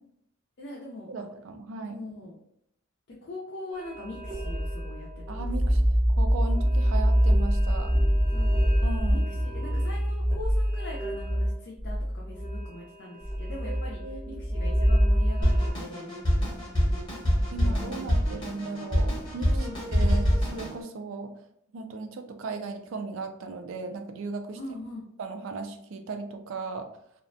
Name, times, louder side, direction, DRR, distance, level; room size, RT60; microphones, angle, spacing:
voice 1, 0.6-1.3 1.9-2.4 3.2-5.4 5.6-5.8 8.3-8.7 9.1-16.1 17.6-18.1 19.5-19.7 24.6-25.1, left 2 dB, 55° left, -4 dB, 0.5 m, -42 dB
voice 2, 1.1-2.0 5.3-8.0 8.8-9.3 13.6-14.4 17.5-19.5 19.9-21.5 21.7-24.6 25.2-26.9, right 3 dB, 65° right, 6 dB, 0.4 m, -37 dB
sound 1, 3.7-15.7, equal, 15° right, 0.6 m, -25 dB
Drum kit, 15.4-20.7, equal, 20° left, 0.8 m, -25 dB
2.4 x 2.1 x 2.5 m, 0.72 s
head